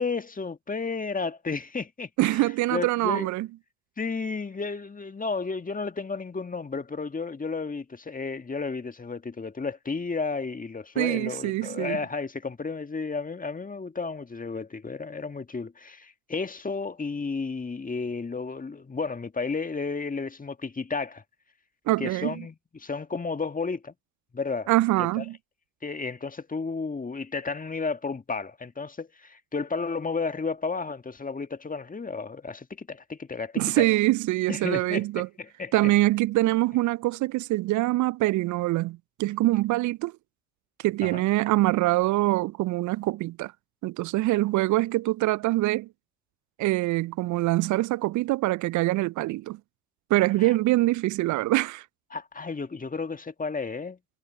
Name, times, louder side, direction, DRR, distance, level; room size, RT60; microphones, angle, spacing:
voice 1, 0.0-3.3 4.0-21.2 22.0-23.9 24.3-24.7 25.2-25.3 25.8-33.9 34.5-35.7 41.0-41.2 50.4-50.5 52.1-54.0, left 4 dB, 20° left, 1.8 m, -32 dB
voice 2, 2.2-3.5 11.0-12.0 21.9-22.3 24.7-25.4 33.6-35.3 35.7-40.1 40.8-43.5 43.8-45.9 46.6-49.6 50.1-51.8, right 18 dB, 40° right, 0.5 m, -24 dB
figure-of-eight pair, 55°, 45 cm